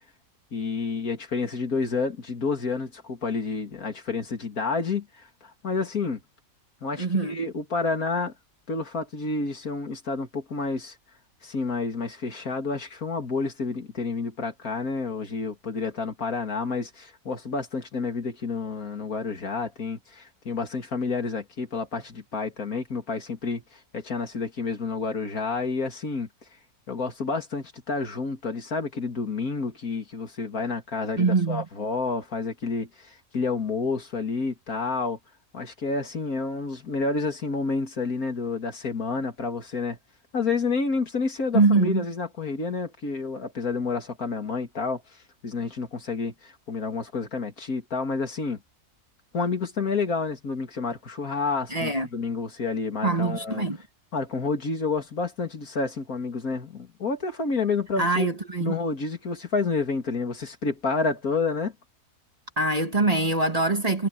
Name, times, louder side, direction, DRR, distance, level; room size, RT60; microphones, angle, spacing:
voice 1, 0.5-6.2 6.8-8.3 8.7-11.0 11.4-26.3 26.9-35.2 35.5-40.0 40.3-45.0 45.4-48.6 49.3-53.7 54.1-58.3 58.6-61.7, left 4 dB, 70° left, 3.0 m, -29 dB
voice 2, 7.0-7.4 31.2-31.7 41.5-42.0 51.7-52.1 53.0-53.8 58.0-58.7 62.6-64.1, right 3 dB, 25° right, 1.7 m, -23 dB
omnidirectional pair, 1.6 m